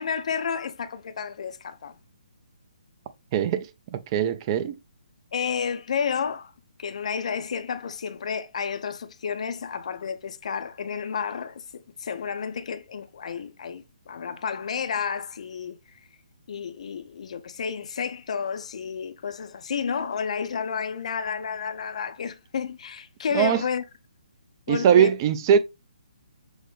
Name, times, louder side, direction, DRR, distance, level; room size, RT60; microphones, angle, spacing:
voice 1, 0.0-2.0 5.3-6.5 6.8-15.8 16.5-23.8 24.7-25.1, left 6 dB, 55° left, 0.5 m, -31 dB
voice 2, 3.3-3.7 3.9-4.8 23.3-23.6 24.7-25.6, right 8 dB, 30° right, 0.4 m, -21 dB
6.3 x 2.1 x 3.1 m
figure-of-eight pair, 140°, 4 cm